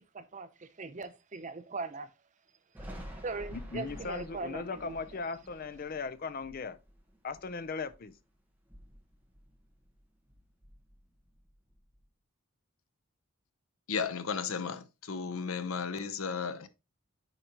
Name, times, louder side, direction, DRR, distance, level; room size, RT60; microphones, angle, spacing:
voice 1, 0.1-2.1 3.2-4.9, right 3 dB, 35° right, 0.6 m, -40 dB
Thunder, 2.7-8.2 8.5-10.0 10.3-12.0, equal, 10° right, 1.3 m, -50 dB
voice 2, 3.5-6.8 7.2-8.2, left 4 dB, 40° left, 0.5 m, -38 dB
voice 3, 13.9-16.7, left 5 dB, 75° left, 0.8 m, -34 dB
9.0 x 5.1 x 2.9 m
head